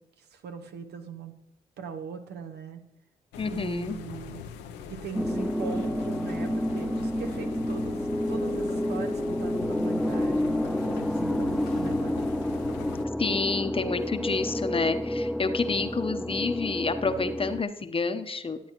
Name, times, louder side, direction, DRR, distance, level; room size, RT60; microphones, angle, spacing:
voice 1, 0.2-1.3 1.8-2.8 3.5-4.4 4.9-8.0 8.3-12.2, right 6 dB, 75° right, 7 dB, 1.0 m, -40 dB
sound 1, 3.3-13.0, left 7 dB, 85° left, 0.6 m, -41 dB
voice 2, 3.4-4.0 13.2-18.6, left 4 dB, 30° left, 10 dB, 0.8 m, -29 dB
sound 2, 5.1-17.6, left 1 dB, ahead, 0.3 m, -29 dB
12.0 x 8.5 x 3.0 m, 0.89 s
supercardioid pair, 50°, 17 cm